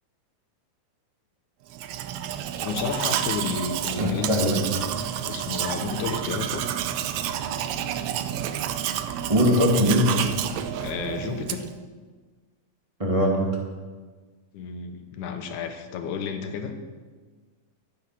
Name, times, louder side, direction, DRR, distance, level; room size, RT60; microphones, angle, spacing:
Domestic sounds home sounds, 1.7-11.8, right 10 dB, 85° right, 1.3 m, -30 dB
voice 1, 2.6-4.4 4.7-6.7 10.8-11.7 14.5-16.7, left 6 dB, 90° left, 6 dB, 2.5 m, -32 dB
voice 2, 4.0-4.6 9.3-10.4 13.0-13.4, equal, 15° right, -1 dB, 1.4 m, -21 dB
12.5 x 8.6 x 5.8 m, 1.4 s
omnidirectional pair, 3.4 m